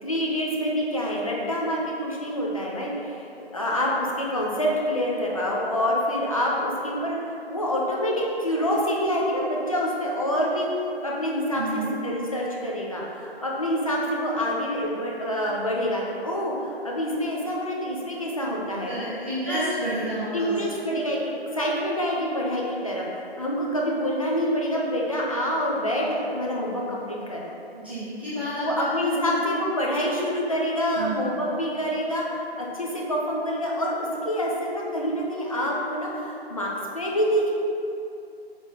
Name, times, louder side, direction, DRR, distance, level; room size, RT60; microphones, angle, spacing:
voice 1, 0.0-10.7 11.0-18.9 19.5-19.6 20.3-27.4 28.6-37.5, equal, 35° left, -3 dB, 0.8 m, -27 dB
voice 2, 11.5-11.9 18.9-20.5 27.7-29.4 30.9-31.2, right 1 dB, 10° right, -14 dB, 0.9 m, -30 dB
8.0 x 3.3 x 3.8 m, 2.7 s
figure-of-eight pair, 175°, 32 cm